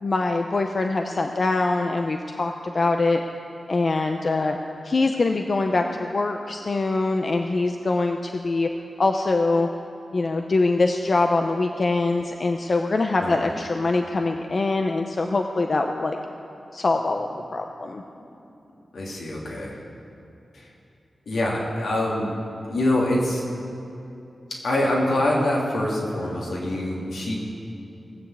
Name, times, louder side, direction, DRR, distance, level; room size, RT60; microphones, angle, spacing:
voice 1, 0.0-3.2 3.7-4.6 4.8-8.7 9.0-9.7 10.1-16.2 16.7-18.0, left 3 dB, 50° left, 4 dB, 0.7 m, -23 dB
voice 2, 18.9-19.8 20.5-20.7 21.3-22.3 22.7-23.4 24.5-27.3, left 1 dB, 80° left, -4 dB, 3.0 m, -25 dB
18.0 x 7.2 x 7.9 m, 2.9 s
cardioid pair, 75°, 0 cm